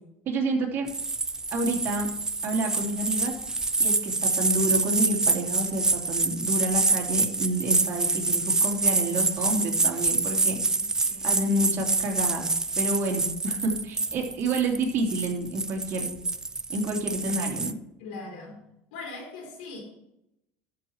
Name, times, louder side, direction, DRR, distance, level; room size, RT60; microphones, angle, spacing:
voice 1, 0.3-0.9 1.5-2.1 2.4-3.4 3.8-10.6 11.2-12.5 12.8-16.2 16.7-17.8, right 2 dB, 45° right, 2 dB, 2.8 m, -29 dB
sound 1, 0.9-17.7, right 3 dB, 15° right, 0.5 m, -27 dB
voice 2, 10.8-11.4 18.0-18.6 18.9-19.8, left 3 dB, 90° left, -1 dB, 4.1 m, -41 dB
13.0 x 6.2 x 4.4 m, 0.83 s
supercardioid pair, 115°, 5 cm